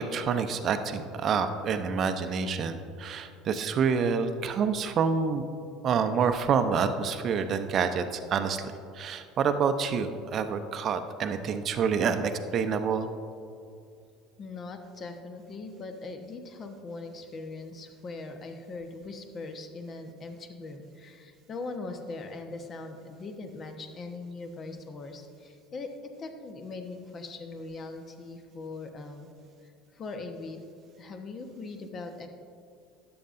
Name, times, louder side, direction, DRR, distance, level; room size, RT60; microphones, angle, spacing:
voice 1, 0.0-5.5 5.8-13.1, right 6 dB, 45° right, 8 dB, 0.6 m, -27 dB
voice 2, 14.4-25.9 26.2-29.3 29.6-30.6 31.0-32.3, left 3 dB, 40° left, 6 dB, 1.1 m, -40 dB
13.0 x 8.7 x 2.6 m, 2.5 s
hypercardioid pair, 70°, 0 cm